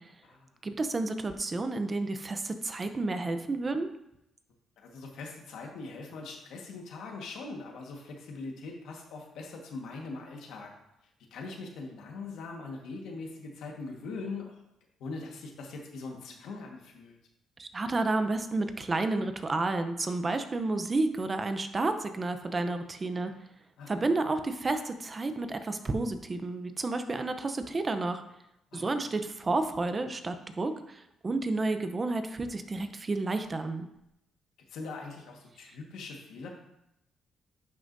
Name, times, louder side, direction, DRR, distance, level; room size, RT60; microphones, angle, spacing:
voice 1, 0.6-3.9 17.6-23.3 23.9-28.2 28.7-33.9, right 2 dB, 30° right, 9 dB, 0.7 m, -31 dB
voice 2, 4.8-10.7 11.3-14.6 15.0-17.2 23.8-24.1 28.7-29.1 34.7-36.5, left 3 dB, 80° left, 1 dB, 1.5 m, -42 dB
10.5 x 6.0 x 2.7 m, 0.83 s
cardioid pair, 90°, 0 cm